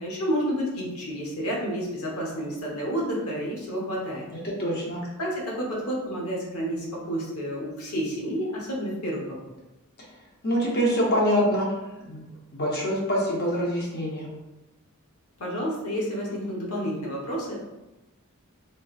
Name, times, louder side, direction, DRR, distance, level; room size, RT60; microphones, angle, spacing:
voice 1, 0.0-4.3 5.2-9.4 15.4-17.6, equal, 85° left, -3 dB, 0.9 m, -30 dB
voice 2, 4.4-5.0 10.4-11.7 12.0-12.2 12.5-14.3, equal, 45° left, -3 dB, 0.8 m, -25 dB
3.2 x 3.0 x 2.4 m, 1.0 s
head